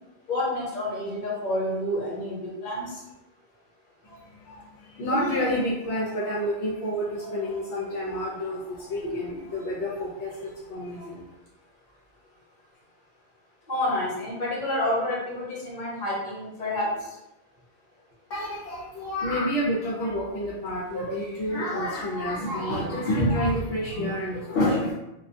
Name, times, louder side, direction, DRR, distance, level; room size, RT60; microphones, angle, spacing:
voice 1, 0.3-3.0 9.0-9.2 13.7-17.1, left 1 dB, 45° left, -6 dB, 1.0 m, -29 dB
voice 2, 4.0-11.2 18.3-24.9, equal, 75° left, -5 dB, 0.9 m, -28 dB
2.4 x 2.1 x 2.6 m, 0.92 s
omnidirectional pair, 1.2 m